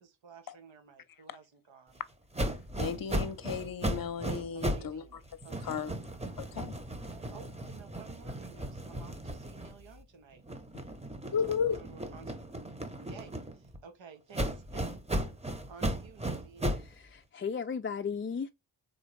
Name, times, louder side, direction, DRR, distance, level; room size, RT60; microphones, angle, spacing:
voice 1, 0.0-2.0 4.5-5.9 7.0-10.4 11.2-11.3 11.8-12.4 13.0-15.0 15.7-16.8, right 6 dB, 70° right, 1.5 m, -53 dB
sound 1, 2.3-4.9 5.2-10.0 10.4-13.8 14.3-16.9, right 1 dB, 15° right, 1.1 m, -36 dB
voice 2, 2.5-5.0 5.6-5.9 6.4-6.7 10.7-10.8 11.3-11.8, left 7 dB, 45° left, 0.8 m, -34 dB
voice 3, 16.7-18.5, left 6 dB, 25° left, 0.5 m, -36 dB
3.9 x 3.8 x 3.4 m
supercardioid pair, 45°, 46 cm